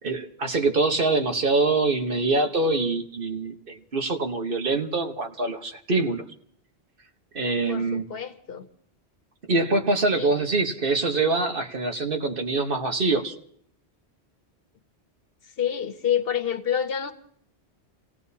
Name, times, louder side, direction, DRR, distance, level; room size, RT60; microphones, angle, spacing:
voice 1, 0.0-6.2 7.3-8.0 9.5-13.3, right 3 dB, 55° right, 4 dB, 1.4 m, -24 dB
voice 2, 7.7-8.7 10.1-10.3 15.6-17.1, left 9 dB, 65° left, 8 dB, 1.1 m, -28 dB
29.5 x 17.0 x 2.8 m, 0.64 s
omnidirectional pair, 1.1 m